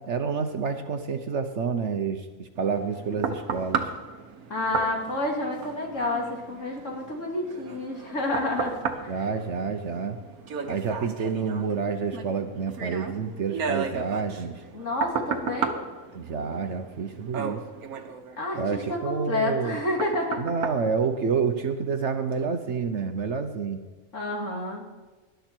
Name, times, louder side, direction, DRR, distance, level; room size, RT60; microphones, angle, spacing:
voice 1, 0.0-3.9 9.1-10.2 10.6-14.6 16.1-17.6 18.6-19.8 20.4-23.8, right 5 dB, 55° right, 7 dB, 1.1 m, -28 dB
sound 1, 2.5-21.8 22.3-22.4, right 6 dB, 75° right, 1.6 m, -35 dB
voice 2, 4.5-9.3 14.7-15.8 18.4-20.4 24.1-24.8, left 2 dB, 55° left, 0 dB, 2.7 m, -29 dB
19.5 x 11.5 x 4.5 m, 1.2 s
omnidirectional pair, 1.5 m